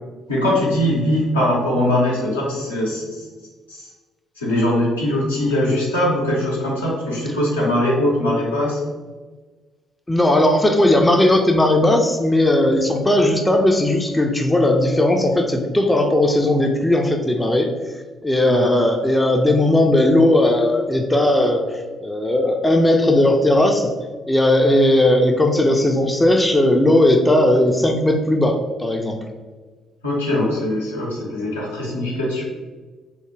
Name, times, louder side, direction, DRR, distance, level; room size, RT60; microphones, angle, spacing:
voice 1, 0.3-3.3 3.7-3.9 4.4-8.8 18.4-18.7 30.0-32.5, left 1 dB, 85° left, -5 dB, 0.6 m, -21 dB
voice 2, 10.1-17.9 18.2-23.9 24.3-29.2, left 1 dB, 15° left, 3 dB, 0.3 m, -17 dB
2.4 x 2.0 x 3.1 m, 1.3 s
figure-of-eight pair, 45°, 0 cm